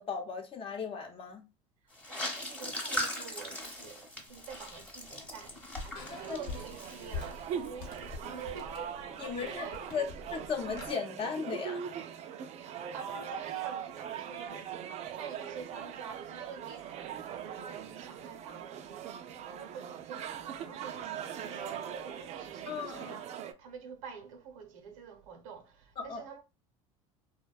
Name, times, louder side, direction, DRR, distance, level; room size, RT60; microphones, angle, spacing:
voice 1, 0.0-1.4 6.3-6.4 9.2-9.6 9.9-11.8 22.7-23.1 26.0-26.2, left 6 dB, 35° left, 0.7 m, -36 dB
sound 1, 1.9-7.7 7.9-8.3, equal, 5° left, 0.9 m, -40 dB
voice 2, 2.1-10.1 12.6-14.7 15.1-23.3 23.6-26.4, right 6 dB, 80° right, 0.7 m, -48 dB
sound 2, 4.3-10.9, left 4 dB, 70° left, 0.9 m, -46 dB
sound 3, 6.1-23.5, right 8 dB, 40° right, 0.4 m, -41 dB
2.6 x 2.1 x 2.3 m
supercardioid pair, 95°, 17 cm